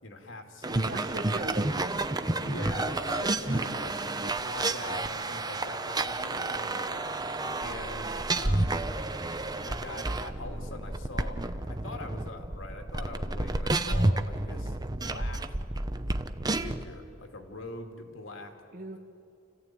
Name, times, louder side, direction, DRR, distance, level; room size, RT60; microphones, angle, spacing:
voice 1, 0.0-0.9 2.4-7.1 7.6-8.9 9.7-11.4 11.7-15.6 16.6-18.5, left 2 dB, 85° left, 3 dB, 2.7 m, -43 dB
sound 1, 0.6-16.9, right 2 dB, 20° right, 0.8 m, -30 dB
voice 2, 0.8-2.1 18.7-19.0, right 2 dB, 45° right, 2 dB, 1.3 m, -38 dB
29.0 x 15.5 x 9.4 m, 2.7 s
head